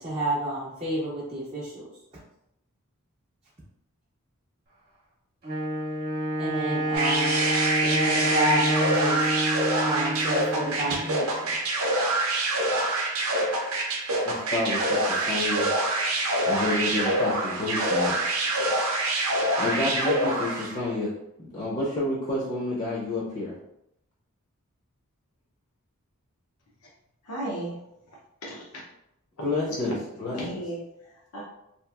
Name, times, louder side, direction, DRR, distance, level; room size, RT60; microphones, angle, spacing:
voice 1, 0.0-1.9 6.4-7.4 7.8-9.3 9.8-11.6, right 1 dB, 25° right, -7 dB, 0.5 m, -30 dB
Wind instrument woodwind instrument, 5.4-11.2, right 1 dB, 45° right, 0.8 m, -28 dB
sound 1, 6.9-20.8, right 1 dB, 70° right, 0.6 m, -26 dB
voice 2, 14.2-15.7 16.4-18.5 19.6-21.1 21.4-23.5 29.4-30.6, left 2 dB, 35° left, -6 dB, 0.6 m, -29 dB
voice 3, 27.2-27.8 28.4-28.8 29.4-29.5 30.3-31.4, right 1 dB, 75° left, -4 dB, 0.6 m, -35 dB
2.9 x 2.4 x 2.3 m, 0.81 s
head